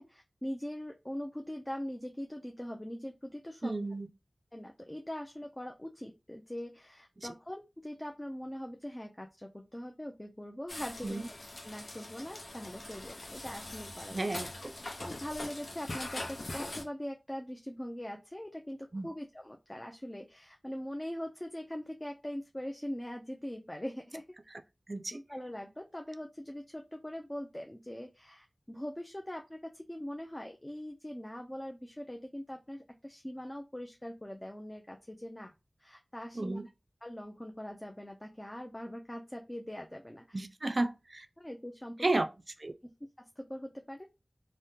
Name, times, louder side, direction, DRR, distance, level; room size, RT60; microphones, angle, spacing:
voice 1, 0.0-3.7 4.5-11.2 11.6-14.2 15.0-24.3 25.1-35.5 35.8-36.6 37.0-40.5 41.4-42.1 42.8-42.9 43.2-44.1, equal, 20° left, 0.4 m, -42 dB
voice 2, 3.6-4.1 7.2-7.3 11.0-11.3 14.1-14.7 18.9-19.1 24.9-25.2 36.3-36.7 40.3-41.3 42.0-42.3 42.6-42.8, right 2 dB, 50° right, 0.4 m, -33 dB
sound 1, 10.7-16.8, left 2 dB, 70° left, 0.7 m, -42 dB
3.4 x 2.1 x 2.8 m
wide cardioid pair, 50°, 0 cm